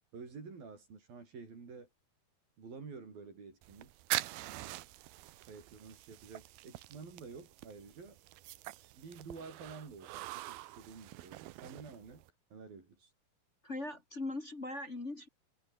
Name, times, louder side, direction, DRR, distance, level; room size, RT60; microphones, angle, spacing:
voice 1, 0.1-1.9 2.6-3.9 5.5-8.2 8.9-12.2 12.5-13.1, right 4 dB, 65° right, 7.5 m, -50 dB
sound 1, 3.6-12.3, right 17 dB, 85° right, 2.8 m, -44 dB
voice 2, 13.6-15.3, left 2 dB, 25° left, 1.8 m, -40 dB
omnidirectional pair, 4.4 m